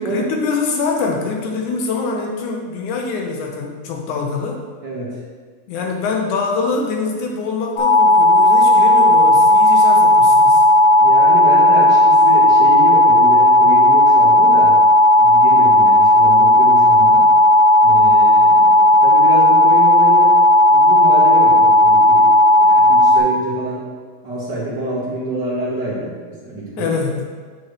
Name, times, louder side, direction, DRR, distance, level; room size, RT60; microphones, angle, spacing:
voice 1, 0.0-4.6 5.7-10.6 26.8-27.3, left 4 dB, 85° left, 1 dB, 2.5 m, -24 dB
voice 2, 4.8-5.2 11.0-14.8 15.2-17.2 17.8-20.3 20.7-22.3 22.6-23.9 24.2-26.1 26.4-26.9, right 1 dB, 40° right, -6 dB, 2.0 m, -26 dB
sound 1, 7.8-23.2, left 1 dB, 55° left, 3.0 m, -12 dB
8.9 x 7.7 x 3.3 m, 1.5 s
omnidirectional pair, 3.4 m